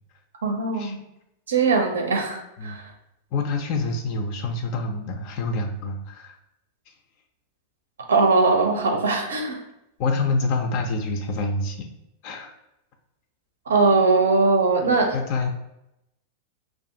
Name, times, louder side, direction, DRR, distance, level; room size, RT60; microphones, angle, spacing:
voice 1, 0.4-1.0 1.5-2.9 8.1-9.6 13.7-15.1, right 3 dB, 70° right, 3 dB, 0.6 m, -20 dB
voice 2, 3.3-6.4 6.9-7.0 8.9-9.0 10.0-11.9 12.2-12.5 14.8-15.5, left 3 dB, 45° left, 4 dB, 0.3 m, -27 dB
2.5 x 2.4 x 3.8 m, 0.85 s
figure-of-eight pair, 90°, 0 cm